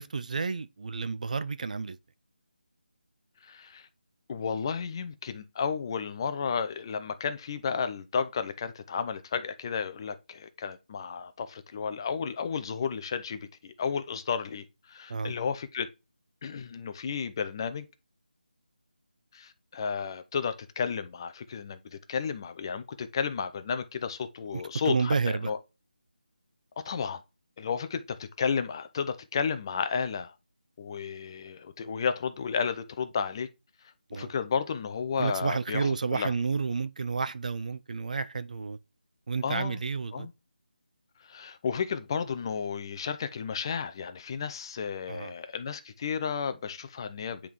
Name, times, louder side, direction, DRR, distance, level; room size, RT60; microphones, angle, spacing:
voice 1, 0.0-2.0 15.1-15.3 24.5-25.5 34.1-34.3 35.2-38.8 39.3-40.3 45.1-45.3, right 5 dB, 50° right, 0.5 m, -31 dB
voice 2, 3.4-3.9 4.3-15.9 16.4-17.9 19.3-25.6 26.8-27.2 27.6-30.3 30.8-33.5 34.1-36.3 39.4-39.8 40.1-40.3 41.3-47.4, left 6 dB, 25° left, 0.5 m, -32 dB
10.0 x 3.6 x 3.1 m
figure-of-eight pair, 160°, 5 cm